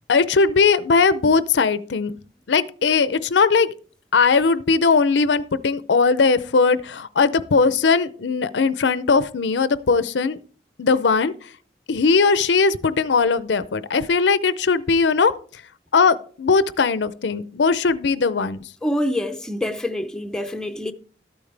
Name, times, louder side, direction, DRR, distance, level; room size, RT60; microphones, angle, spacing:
voice 1, 0.1-2.1 2.5-3.7 4.1-10.4 10.8-11.5 11.9-15.6 15.9-18.6, left 4 dB, 85° left, 0.6 m, -19 dB
voice 2, 18.8-20.9, left 1 dB, 5° left, 0.6 m, -26 dB
13.0 x 8.7 x 3.3 m
head